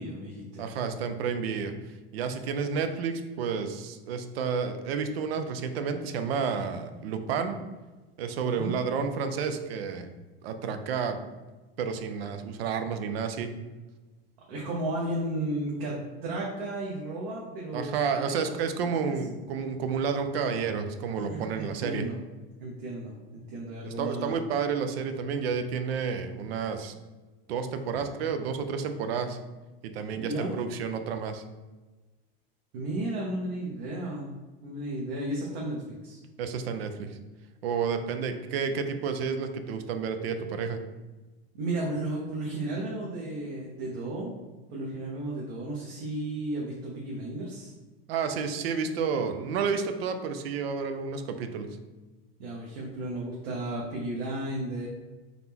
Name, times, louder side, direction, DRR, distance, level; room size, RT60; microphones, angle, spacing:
voice 1, 0.0-0.7 8.4-8.8 14.5-18.1 18.4-19.2 21.2-22.1 22.6-24.5 30.1-30.5 32.7-34.3 34.6-36.2 41.5-44.3 44.7-47.7 52.4-54.9, right 1 dB, 60° right, -3 dB, 1.0 m, -34 dB
voice 2, 0.6-1.7 2.1-7.6 8.2-10.1 10.4-11.2 11.8-13.5 17.7-22.1 23.8-27.0 27.5-29.4 29.8-31.4 36.4-37.2 37.6-40.8 48.1-51.7, right 6 dB, 85° right, 8 dB, 0.6 m, -30 dB
4.0 x 3.0 x 3.5 m, 1.2 s
supercardioid pair, 130°, 30 cm